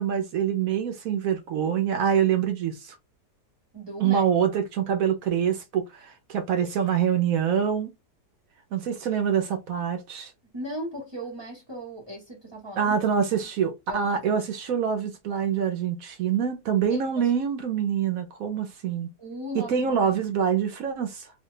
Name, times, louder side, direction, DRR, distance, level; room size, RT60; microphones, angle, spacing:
voice 1, 0.0-3.0 4.0-7.9 8.7-10.3 12.8-19.1 19.5-21.3, right 8 dB, 70° right, 0.9 m, -25 dB
voice 2, 3.7-4.3 10.5-13.0 13.3-13.5 13.9-14.2 16.9-17.3 19.2-20.1, equal, 20° right, 0.8 m, -37 dB
2.8 x 2.2 x 3.7 m
omnidirectional pair, 1.7 m